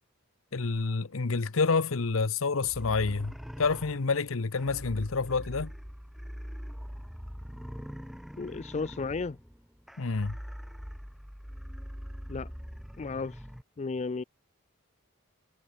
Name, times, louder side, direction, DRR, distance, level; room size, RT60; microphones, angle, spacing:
voice 1, 0.5-5.7 10.0-10.4, left 4 dB, 80° left, 0.9 m, -28 dB
sound 1, 2.6-13.6, equal, ahead, 1.2 m, -43 dB
voice 2, 8.4-9.4 12.3-12.5 13.0-13.4 13.8-14.2, left 4 dB, 35° left, 0.4 m, -33 dB
head